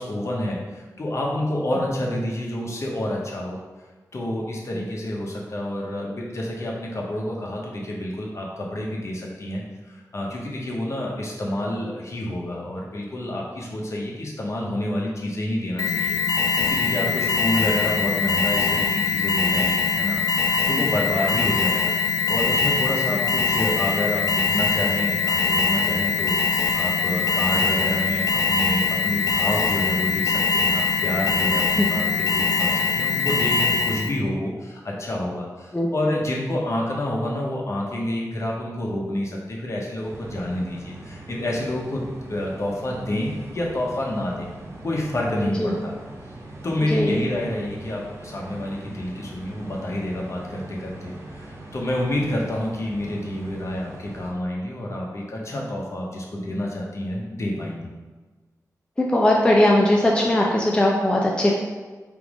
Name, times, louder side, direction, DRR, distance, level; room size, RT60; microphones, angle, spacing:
voice 1, 0.0-3.6 4.1-9.6 9.9-21.9 22.3-44.5 44.8-45.9 46.6-57.9, left 1 dB, 50° left, -2 dB, 0.9 m, -28 dB
Alarm, 15.8-34.2, left 5 dB, 65° left, 0.4 m, -22 dB
sound 1, 40.0-54.3, right 2 dB, 40° right, 0.8 m, -41 dB
voice 2, 46.8-47.2 59.0-61.5, left 1 dB, 15° left, -2 dB, 0.5 m, -19 dB
3.5 x 3.1 x 4.8 m, 1.3 s
wide cardioid pair, 110°, 6 cm